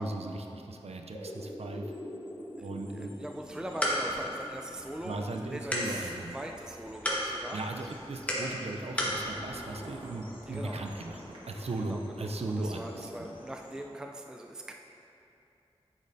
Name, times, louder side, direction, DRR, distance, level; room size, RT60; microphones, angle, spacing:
voice 1, 0.0-1.9 2.6-3.1 5.0-6.4 7.5-11.2 11.5-13.1, right 2 dB, 75° right, 3 dB, 0.5 m, -37 dB
sound 1, 1.0-13.8, left 1 dB, 55° left, 1.2 m, -48 dB
voice 2, 2.6-7.9 10.5-10.8 11.8-14.7, right 1 dB, 5° right, 2 dB, 0.4 m, -42 dB
sound 2, 3.4-9.2, equal, 10° left, 1.3 m, -35 dB
sound 3, 8.9-12.0, equal, 50° right, 1.4 m, -47 dB
8.3 x 6.3 x 2.7 m, 2.8 s
wide cardioid pair, 45°, 11 cm